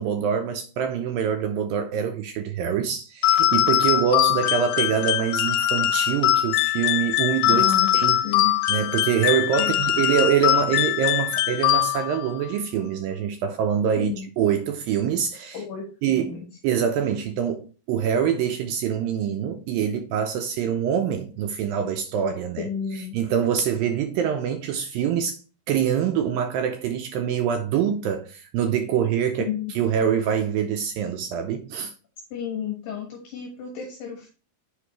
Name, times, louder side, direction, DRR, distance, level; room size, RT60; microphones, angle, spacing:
voice 1, 0.0-7.7 7.9-8.2 8.7-15.6 16.0-16.4 16.6-22.7 23.1-25.4 25.7-29.5 29.8-31.9, right 8 dB, 80° right, 2.1 m, -25 dB
sound 1, 3.2-12.3, left 13 dB, 85° left, 2.7 m, -22 dB
voice 2, 7.5-7.9 8.2-8.5 9.6-10.0 14.0-14.3 15.5-16.5 22.6-23.1 29.4-29.8 32.3-34.3, left 8 dB, 70° left, 2.9 m, -32 dB
8.2 x 5.2 x 3.0 m
omnidirectional pair, 4.5 m